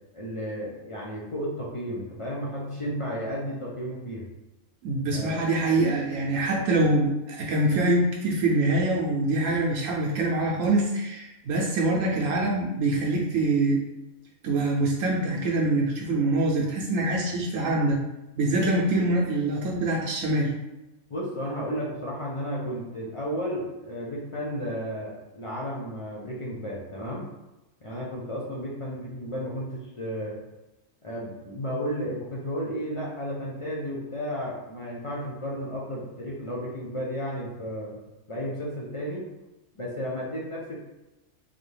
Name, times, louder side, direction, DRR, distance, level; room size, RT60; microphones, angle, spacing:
voice 1, 0.1-4.3 5.1-5.4 21.1-27.3 27.8-30.4 31.0-38.0 38.3-39.3 39.7-40.8, equal, 55° left, -4 dB, 0.3 m, -33 dB
voice 2, 4.8-13.8 14.4-18.0 18.4-20.5, right 2 dB, 75° right, -1 dB, 1.0 m, -24 dB
3.9 x 2.7 x 3.2 m, 1.0 s
omnidirectional pair, 1.4 m